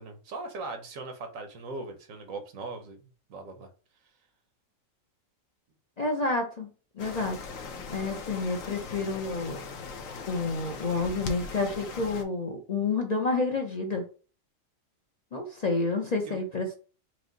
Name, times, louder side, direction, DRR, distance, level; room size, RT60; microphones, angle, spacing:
voice 1, 0.0-3.7 16.2-16.4, right 3 dB, 80° right, 1.2 m, -40 dB
voice 2, 6.0-6.7 7.0-7.4 7.9-9.6 10.3-14.0 15.3-16.7, left 3 dB, 45° left, 0.6 m, -29 dB
sound 1, 7.0-12.2, left 4 dB, 80° left, 1.1 m, -40 dB
4.8 x 2.0 x 3.9 m
omnidirectional pair, 1.4 m